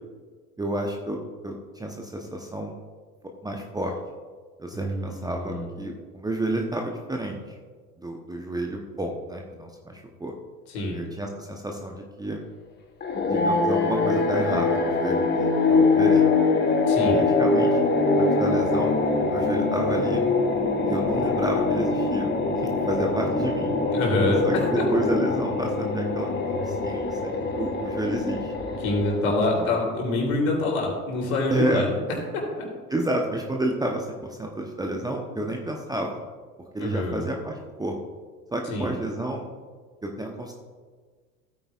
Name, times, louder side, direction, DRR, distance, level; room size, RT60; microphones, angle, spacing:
voice 1, 0.6-1.2 1.4-2.7 3.4-4.0 4.6-7.6 8.0-10.3 10.9-12.4 13.3-16.3 17.0-17.9 18.2-20.2 20.9-22.3 22.6-23.7 24.4-28.5 29.3-29.8 31.5-31.8 32.9-36.2 36.7-37.9 38.5-39.4 40.0-40.5, right 1 dB, 10° right, 1 dB, 0.9 m, -30 dB
voice 2, 4.7-5.7 10.7-11.0 16.9-17.2 23.9-24.8 28.8-32.0 32.3-32.7 36.8-37.3 38.7-39.0, left 2 dB, 60° left, -1 dB, 3.4 m, -26 dB
sound 1, 13.0-29.6, left 3 dB, 20° left, 1.3 m, -23 dB
15.5 x 9.1 x 2.4 m, 1.5 s
figure-of-eight pair, 75°, 46 cm